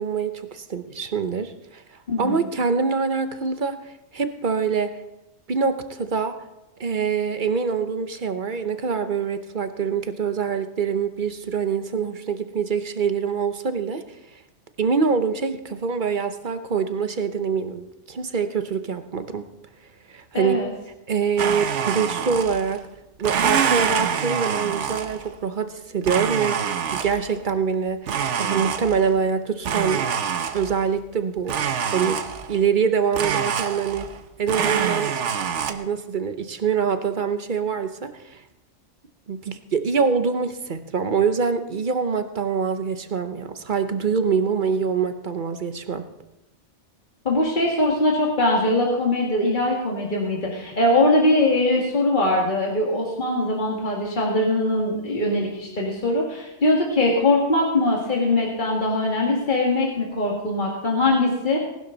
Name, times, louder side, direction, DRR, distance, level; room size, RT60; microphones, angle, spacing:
voice 1, 0.0-1.8 2.2-4.9 5.5-6.4 6.8-14.0 14.8-19.5 20.1-20.6 21.1-22.9 23.2-30.1 30.5-31.6 31.9-32.2 32.5-34.1 34.4-35.2 35.7-38.4 39.3-46.1, right 6 dB, 45° right, 9 dB, 1.0 m, -25 dB
voice 2, 2.1-2.4 20.3-20.7 47.2-61.6, left 2 dB, 40° left, -1 dB, 2.3 m, -21 dB
Domestic sounds home sounds, 21.4-22.8 23.2-25.3 26.0-27.3 28.1-29.2 29.6-30.9 31.5-32.6 33.1-34.2 34.5-35.7, right 7 dB, 85° right, 1.2 m, -25 dB
18.5 x 12.0 x 4.0 m, 0.92 s
omnidirectional pair, 1.2 m